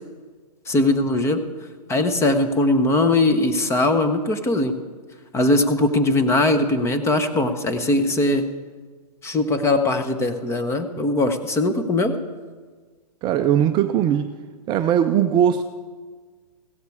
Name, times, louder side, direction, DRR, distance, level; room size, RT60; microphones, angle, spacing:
voice 1, 0.7-1.4 1.9-4.8 5.3-8.5 9.2-12.1, left 2 dB, 15° left, 9 dB, 1.1 m, -20 dB
voice 2, 13.2-14.3 14.7-15.6, right 9 dB, 20° right, 7 dB, 0.5 m, -19 dB
16.0 x 14.0 x 4.7 m, 1.5 s
hypercardioid pair, 130°, 20 cm